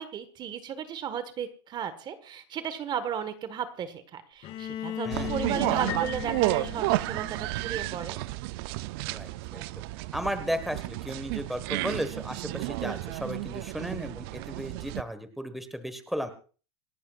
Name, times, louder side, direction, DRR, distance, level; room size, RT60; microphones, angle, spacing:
voice 1, 0.0-8.2, right 8 dB, 30° right, 12 dB, 1.5 m, -35 dB
Bowed string instrument, 4.4-8.3, left 11 dB, 45° left, 2.7 m, -38 dB
sound 1, 5.1-15.0, right 19 dB, 60° right, 0.5 m, -32 dB
Piano, 5.9-7.7, left 10 dB, 80° left, 4.5 m, -41 dB
voice 2, 9.1-9.6 10.1-16.3, equal, ahead, 9 dB, 1.4 m, -34 dB
27.0 x 12.0 x 2.4 m, 0.38 s
supercardioid pair, 130°, 14 cm